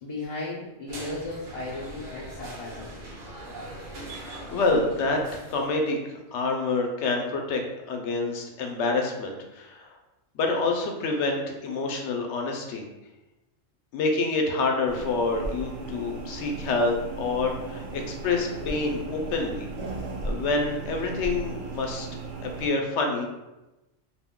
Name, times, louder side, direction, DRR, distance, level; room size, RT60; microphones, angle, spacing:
voice 1, 0.0-3.0, left 2 dB, 55° left, -6 dB, 0.4 m, -35 dB
sound 1, 0.9-5.9, right 1 dB, 55° right, 0.8 m, -41 dB
voice 2, 4.1-5.2 5.5-7.6 7.9-9.9 10.3-12.9 13.9-19.7 20.2-22.1 22.4-23.3, left 3 dB, 85° left, 2 dB, 0.9 m, -27 dB
sound 2, 14.9-22.7, right 3 dB, 85° right, 0.9 m, -36 dB
2.6 x 2.2 x 3.5 m, 1.0 s
omnidirectional pair, 1.1 m